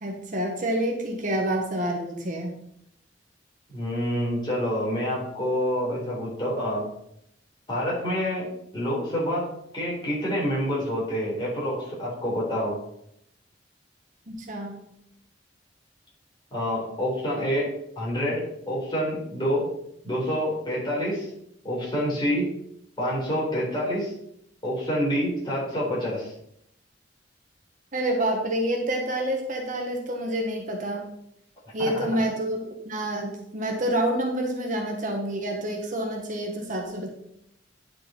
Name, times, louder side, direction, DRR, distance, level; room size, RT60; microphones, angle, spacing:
voice 1, 0.0-2.5 14.3-14.8 27.9-31.1 31.7-32.6 32.8-37.1, right 1 dB, 45° right, 1 dB, 1.4 m, -28 dB
voice 2, 3.7-6.9 7.7-8.5 8.7-12.8 16.5-19.7 20.0-21.3 21.6-22.5 23.0-24.1 24.6-26.3 31.8-31.9, equal, 25° left, -5 dB, 3.9 m, -27 dB
10.0 x 5.3 x 4.4 m, 0.74 s
head